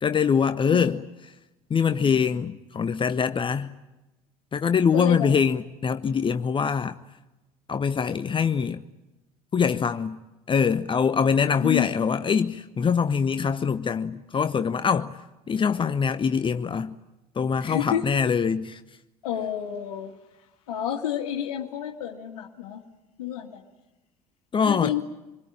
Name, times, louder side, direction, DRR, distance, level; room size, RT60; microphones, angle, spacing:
voice 1, 0.0-1.0 1.7-3.7 4.5-7.0 7.7-8.8 9.5-10.2 10.5-15.1 15.5-16.9 17.4-18.8 24.5-24.9, left 6 dB, 25° left, 0.9 m, -23 dB
voice 2, 4.9-5.4 11.4-11.9 17.6-18.0 19.2-20.1 20.7-22.8 23.2-23.6 24.6-25.0, left 10 dB, 70° left, 2.0 m, -29 dB
26.5 x 22.0 x 8.9 m
figure-of-eight pair, 65°, 19 cm